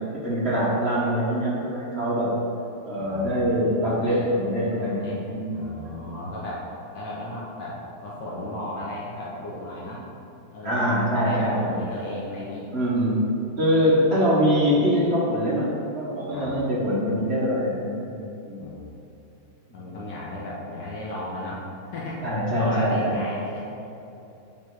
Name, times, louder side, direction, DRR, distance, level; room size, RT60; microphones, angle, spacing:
voice 1, 0.1-2.3 2.8-5.9 10.6-11.8 12.7-13.2 13.6-18.2 18.5-18.6 22.2-23.2, equal, 45° right, -7 dB, 0.9 m, -23 dB
voice 2, 3.0-3.7 4.0-4.3 4.6-5.2 5.5-6.7 6.9-10.1 10.5-12.7 13.7-13.9 16.3-16.5 18.6-18.8 19.7-23.9, left 1 dB, 65° left, -5 dB, 1.3 m, -35 dB
7.1 x 3.2 x 4.5 m, 2.9 s
omnidirectional pair, 2.3 m